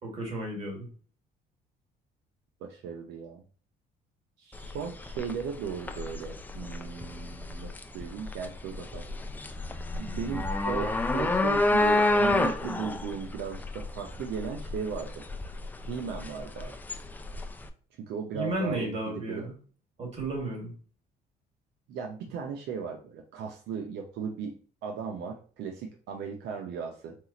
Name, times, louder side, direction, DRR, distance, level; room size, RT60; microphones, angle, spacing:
voice 1, 0.0-0.9 18.3-19.5 20.0-20.7, right 1 dB, 40° right, 0 dB, 2.0 m, -33 dB
voice 2, 2.6-3.4 4.4-9.0 10.0-15.2 15.9-16.7 18.0-19.4 21.9-24.5 24.8-27.2, right 6 dB, 80° right, 2 dB, 0.7 m, -36 dB
sound 1, 4.5-17.7, left 2 dB, 10° left, 0.4 m, -30 dB
4.5 x 2.4 x 4.0 m, 0.40 s
cardioid pair, 110°, 17 cm